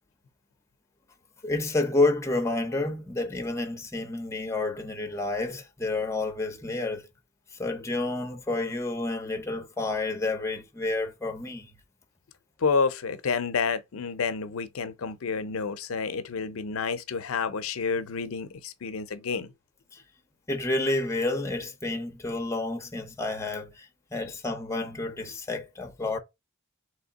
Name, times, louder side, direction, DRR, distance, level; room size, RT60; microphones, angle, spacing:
voice 1, 1.4-7.1 7.6-11.8 19.9-20.0 20.5-26.2, left 2 dB, 15° left, 0.7 m, -29 dB
voice 2, 12.6-19.5, left 5 dB, 80° left, 0.5 m, -29 dB
3.5 x 3.2 x 3.9 m
head